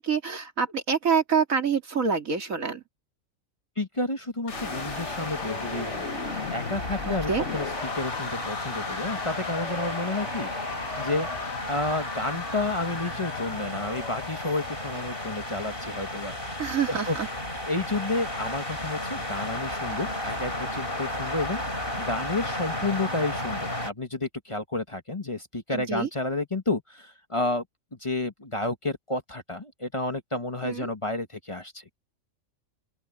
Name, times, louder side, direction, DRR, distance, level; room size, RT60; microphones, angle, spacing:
voice 1, 0.0-2.8 7.0-7.4 16.6-17.3 25.7-26.1 30.6-30.9, right 6 dB, 85° right, 2.9 m, -26 dB
voice 2, 3.8-6.1 6.5-7.7 7.9-11.3 11.7-16.6 16.9-17.2 17.7-27.6 27.9-32.0, left 2 dB, 25° left, 1.3 m, -31 dB
sound 1, 4.5-16.5, left 5 dB, 60° left, 1.9 m, -37 dB
sound 2, 4.5-23.9, left 1 dB, 45° left, 5.6 m, -34 dB
open air
omnidirectional pair, 1.4 m